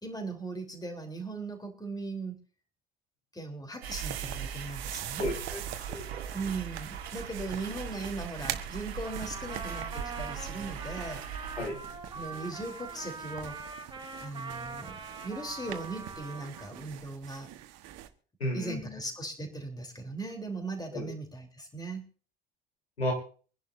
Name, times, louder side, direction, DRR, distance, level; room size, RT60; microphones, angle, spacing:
voice 1, 0.0-2.4 3.3-5.3 6.3-11.2 12.1-13.6 14.2-17.5 18.5-22.0, right 3 dB, 10° left, 4 dB, 3.4 m, -38 dB
sound 1, 3.8-11.7, right 7 dB, 80° right, 1.3 m, -40 dB
sound 2, 3.9-18.1, right 12 dB, 55° right, 1.3 m, -44 dB
voice 2, 5.2-6.0 11.5-11.8 18.4-19.0 20.9-21.1 23.0-23.1, left 1 dB, 85° left, 1 dB, 3.4 m, -33 dB
Trumpet, 9.0-16.9, right 4 dB, 15° right, 3.6 m, -43 dB
25.0 x 11.0 x 2.6 m, 0.40 s
figure-of-eight pair, 65°, 31 cm